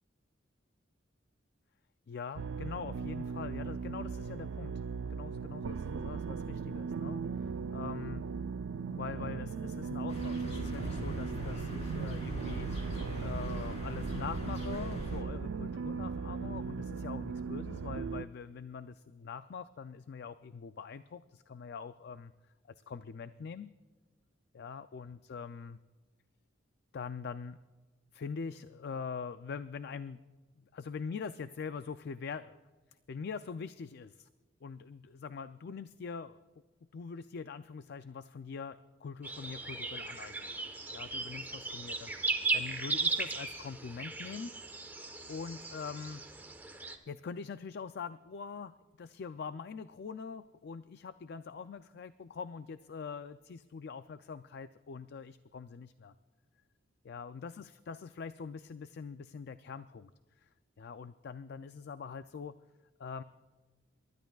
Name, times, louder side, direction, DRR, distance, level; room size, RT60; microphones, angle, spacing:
voice 1, 2.1-8.2 8.9-12.7 13.2-22.3 22.9-23.7 24.5-25.8 26.9-27.6 28.1-30.2 30.7-32.6 33.1-34.3 34.6-36.4 36.9-40.5 40.9-44.5 44.9-45.0 45.3-46.2 47.1-56.1 57.0-60.1 60.4-60.5 60.8-62.5 63.0-63.2, left 5 dB, 55° left, 12 dB, 0.4 m, -43 dB
sound 1, 2.4-18.3, right 5 dB, 75° right, 0.4 m, -38 dB
sound 2, 10.1-15.2, equal, 35° left, 3.6 m, -41 dB
sound 3, 39.2-47.0, right 3 dB, 10° right, 1.1 m, -37 dB
28.5 x 13.0 x 2.3 m, 1.3 s
head